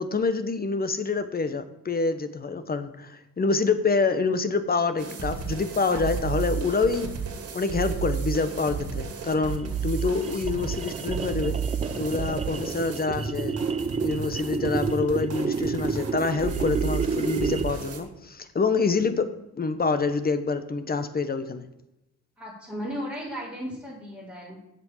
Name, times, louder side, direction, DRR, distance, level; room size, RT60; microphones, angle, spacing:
voice 1, 0.0-7.1 7.5-11.6 12.0-13.6 14.0-21.7, left 4 dB, 30° left, 11 dB, 1.1 m, -26 dB
sound 1, 5.0-18.0, right 6 dB, 50° right, 2.2 m, -32 dB
sound 2, 9.2-17.9, right 5 dB, 20° right, 0.5 m, -30 dB
voice 2, 22.4-24.6, equal, 5° right, -9 dB, 4.4 m, -36 dB
7.7 x 7.1 x 7.4 m, 0.90 s
cardioid pair, 90°, 30 cm